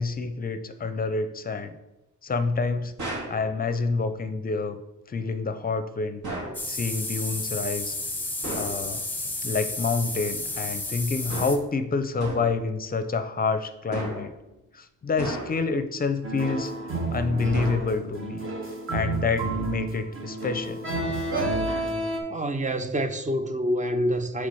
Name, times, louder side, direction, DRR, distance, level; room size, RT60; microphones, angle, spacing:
voice 1, 0.0-1.7 2.2-2.9 3.3-4.8 5.1-6.2 6.7-8.0 8.5-9.0 9.4-14.3 14.7-16.7 17.1-18.5 18.9-20.8, left 4 dB, 30° left, 0.5 m, -28 dB
sound 1, 3.0-3.4 6.2-6.6 8.4-8.8 11.3-11.7 12.2-12.6 13.9-14.4 15.2-15.8 17.5-18.2, right 2 dB, 70° right, 1.9 m, -34 dB
sound 2, 6.5-11.6, left 2 dB, 5° left, 0.9 m, -32 dB
sound 3, 16.2-22.2, right 2 dB, 40° right, 1.2 m, -30 dB
voice 2, 22.3-24.5, equal, 25° right, 0.5 m, -27 dB
8.4 x 3.4 x 5.4 m
wide cardioid pair, 145°, 31 cm